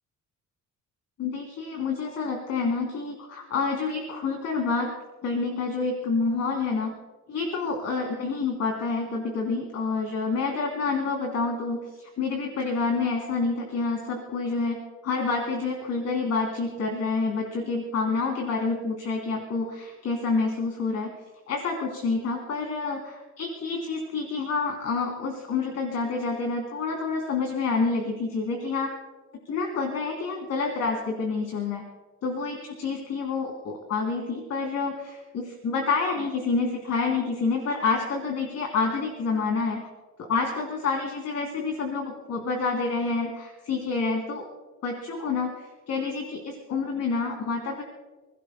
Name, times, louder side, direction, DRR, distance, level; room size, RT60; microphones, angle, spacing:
voice 1, 1.2-4.9 5.2-6.9 7.3-21.1 21.5-28.9 29.4-31.8 32.2-39.9 40.2-44.4 44.8-47.8, left 4 dB, 60° left, 0 dB, 3.1 m, -28 dB
29.5 x 16.5 x 2.2 m, 1.2 s
cardioid pair, 105°, 30 cm